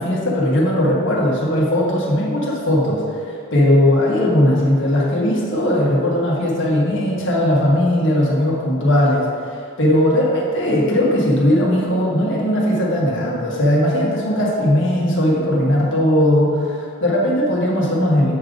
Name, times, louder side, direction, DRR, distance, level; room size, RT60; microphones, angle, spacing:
voice 1, 0.0-18.3, left 1 dB, 60° left, -4 dB, 1.6 m, -18 dB
8.0 x 3.9 x 5.0 m, 2.3 s
head